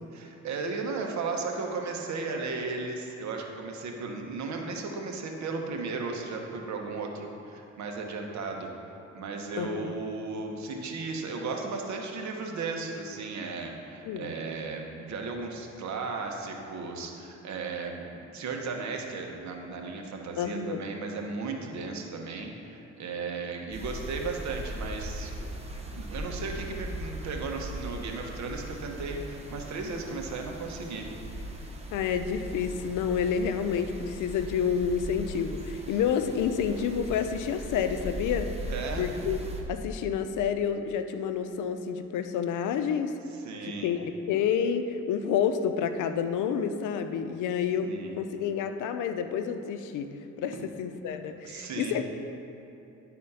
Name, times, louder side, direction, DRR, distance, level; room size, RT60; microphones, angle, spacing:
voice 1, 0.1-8.7 9.1-25.3 25.9-31.1 38.7-39.1 43.4-43.9 47.8-48.2 50.5-50.6 51.4-52.0, right 4 dB, 65° right, 2 dB, 1.2 m, -35 dB
voice 2, 9.6-9.9 14.0-14.3 20.4-20.8 31.9-38.5 39.0-39.4 39.7-43.1 43.6-50.1 50.4-52.0, left 7 dB, 85° left, 9 dB, 0.6 m, -29 dB
sound 1, 23.7-39.6, right 1 dB, 20° right, 1.1 m, -39 dB
11.0 x 4.2 x 5.6 m, 2.8 s
cardioid pair, 90°, 30 cm